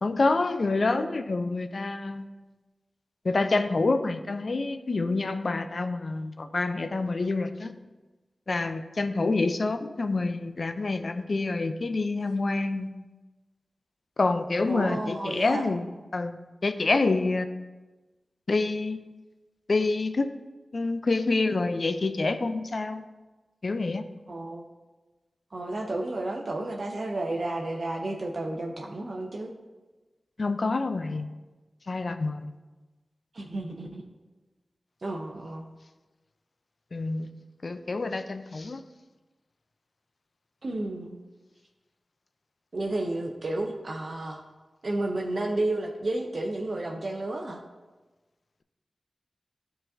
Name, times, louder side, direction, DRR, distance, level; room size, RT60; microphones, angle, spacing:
voice 1, 0.0-2.3 3.2-7.7 8.5-12.9 14.2-17.5 18.5-19.0 19.7-20.3 20.7-23.0 23.6-24.1 30.4-31.3 31.9-32.5 36.9-37.3 37.6-38.8, left 3 dB, 60° left, 9 dB, 0.4 m, -27 dB
voice 2, 14.7-15.6 24.3-24.7 25.5-29.5 33.3-34.0 35.0-35.6 40.6-41.2 42.7-44.4 44.8-47.6, right 2 dB, 65° right, 1 dB, 0.6 m, -31 dB
10.5 x 3.9 x 2.7 m, 1.2 s
cardioid pair, 45°, 0 cm